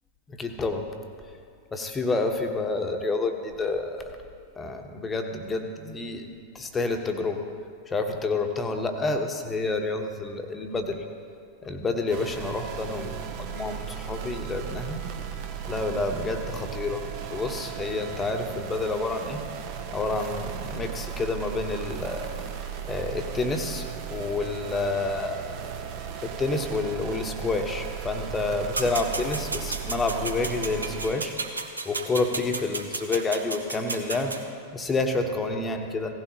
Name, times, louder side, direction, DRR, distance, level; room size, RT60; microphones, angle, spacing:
voice 1, 0.3-0.9 1.7-4.2 4.6-6.2 6.5-7.4 7.9-11.0 11.6-15.1 15.7-19.4 19.9-22.3 22.8-23.8 24.1-25.4 26.4-31.3 31.8-34.4 34.7-36.1, left 3 dB, 15° left, 5 dB, 1.1 m, -29 dB
sound 1, 12.1-31.1, right 8 dB, 45° right, 1.0 m, -36 dB
sound 2, 28.7-34.4, right 3 dB, 80° right, 0.8 m, -33 dB
17.0 x 15.0 x 2.9 m, 2.2 s
figure-of-eight pair, 90°, 0 cm